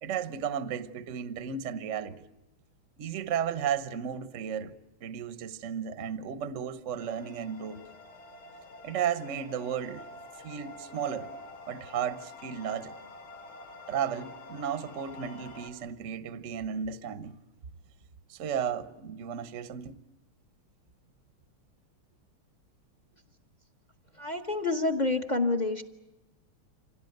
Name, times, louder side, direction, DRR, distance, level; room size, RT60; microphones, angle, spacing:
voice 1, 0.0-2.2 3.0-4.7 5.0-7.8 8.8-10.0 10.4-11.3 11.7-13.0 13.9-17.4 18.3-20.0, right 8 dB, 45° right, 1.0 m, -34 dB
sound 1, 7.0-15.7, left 2 dB, 80° left, 3.9 m, -47 dB
voice 2, 24.2-25.8, left 2 dB, 30° left, 1.0 m, -28 dB
26.0 x 17.5 x 9.2 m
omnidirectional pair, 2.3 m